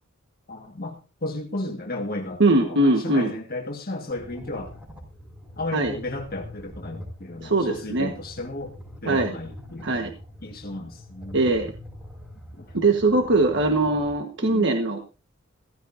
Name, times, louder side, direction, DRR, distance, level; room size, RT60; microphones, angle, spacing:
voice 1, 0.5-4.7 5.6-8.7 9.0-9.9 10.4-11.4 12.6-12.8 14.4-14.7, left 2 dB, 50° left, 1 dB, 1.7 m, -34 dB
voice 2, 2.4-3.3 5.7-5.9 7.4-8.1 9.0-9.3 9.8-10.1 11.3-11.7 12.7-15.0, right 2 dB, 60° right, 4 dB, 1.4 m, -21 dB
sound 1, 4.1-14.1, equal, 5° right, 4.9 m, -43 dB
16.0 x 15.0 x 2.7 m, 0.33 s
head